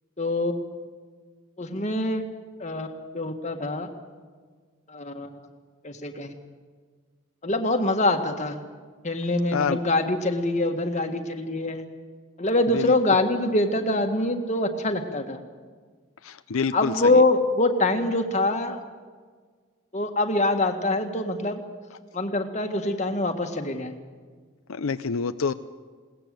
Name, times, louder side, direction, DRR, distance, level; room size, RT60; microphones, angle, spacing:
voice 1, 0.2-0.6 1.6-2.2 2.6-2.9 3.1-3.9 4.9-5.4 5.8-6.3 7.4-8.6 9.0-11.8 12.4-15.4 16.7-18.8 19.9-21.6 22.1-23.9, left 2 dB, 35° left, 5 dB, 1.7 m, -24 dB
voice 2, 16.2-16.9 24.7-25.5, left 5 dB, 80° left, 11 dB, 0.6 m, -27 dB
21.0 x 18.0 x 7.7 m, 1.6 s
head